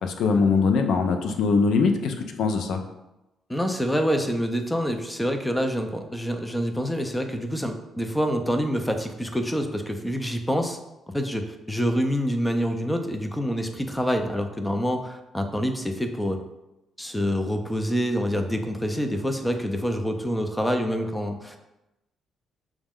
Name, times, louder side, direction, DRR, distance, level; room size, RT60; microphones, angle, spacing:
voice 1, 0.0-2.8, left 4 dB, 75° left, 5 dB, 0.4 m, -22 dB
voice 2, 3.5-10.8 11.1-16.4 17.0-21.6, equal, 10° left, 6 dB, 0.4 m, -26 dB
5.8 x 2.1 x 3.6 m, 0.95 s
cardioid pair, 90°, 0 cm